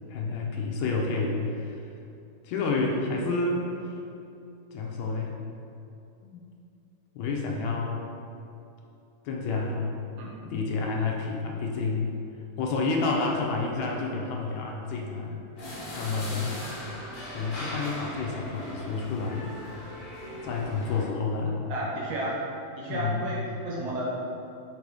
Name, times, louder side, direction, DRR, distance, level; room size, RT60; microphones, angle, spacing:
voice 1, 0.1-1.8 2.4-4.0 4.7-5.3 6.2-6.5 7.2-8.1 9.3-9.9 10.4-12.1 12.6-15.4 15.9-16.6 17.3-19.5 20.4-21.6 22.9-23.3, left 3 dB, 75° left, -1 dB, 1.9 m, -29 dB
sound 1, 15.6-21.1, equal, 55° left, 1.0 m, -39 dB
voice 2, 21.7-22.4 22.8-24.2, right 1 dB, 65° right, -5 dB, 1.9 m, -32 dB
5.5 x 4.8 x 4.7 m, 2.7 s
omnidirectional pair, 3.4 m